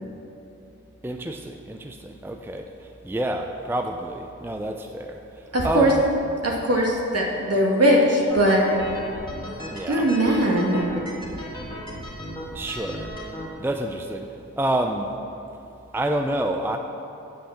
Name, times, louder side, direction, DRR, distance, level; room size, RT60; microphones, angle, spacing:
voice 1, 1.0-5.2 5.6-6.0 9.7-10.1 12.5-13.1 13.6-14.3 14.6-15.1 15.9-16.8, right 1 dB, 5° right, 4 dB, 0.5 m, -28 dB
voice 2, 5.5-5.9 6.4-8.6 9.8-10.8, right 1 dB, 50° right, -2 dB, 1.9 m, -20 dB
sound 1, 8.3-13.5, equal, 15° left, 2.1 m, -36 dB
7.9 x 5.7 x 7.2 m, 2.8 s
cardioid pair, 40°, 30 cm